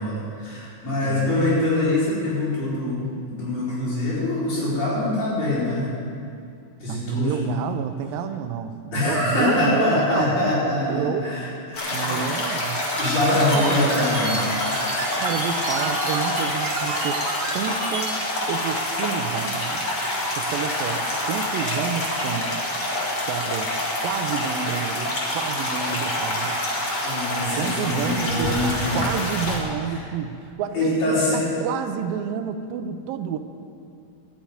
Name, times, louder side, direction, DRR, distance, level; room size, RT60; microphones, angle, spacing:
voice 1, 0.0-6.0 6.8-7.5 8.9-11.5 11.7-12.2 13.0-14.5 27.0-29.1 30.7-31.5, left 1 dB, 80° left, -9 dB, 6.1 m, -24 dB
voice 2, 1.0-1.5 6.9-11.4 11.9-12.8 13.3-13.9 15.2-17.2 17.5-18.2 18.5-19.8 20.4-22.5 23.3-23.7 24.0-26.6 27.6-33.4, right 8 dB, 85° right, 9 dB, 2.4 m, -30 dB
sound 1, 11.7-29.6, left 1 dB, 35° left, 2.0 m, -27 dB
sound 2, 12.9-18.1, right 3 dB, 50° right, 2.0 m, -31 dB
13.0 x 7.3 x 9.3 m, 2.4 s
omnidirectional pair, 4.0 m